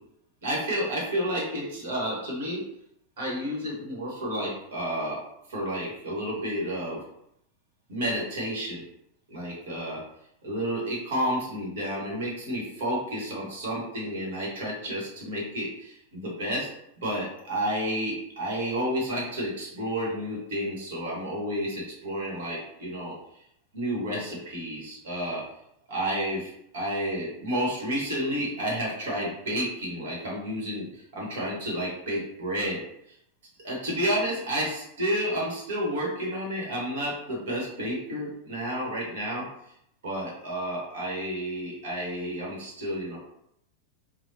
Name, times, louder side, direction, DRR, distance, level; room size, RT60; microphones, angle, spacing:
voice 1, 0.4-2.6 3.2-5.2 5.5-7.0 7.9-8.8 9.3-10.0 10.4-16.7 17.0-23.1 23.7-25.4 25.9-32.8 33.6-39.4 40.0-43.2, equal, 60° right, -3 dB, 1.3 m, -31 dB
3.2 x 2.3 x 2.7 m, 0.76 s
figure-of-eight pair, 90°, 0 cm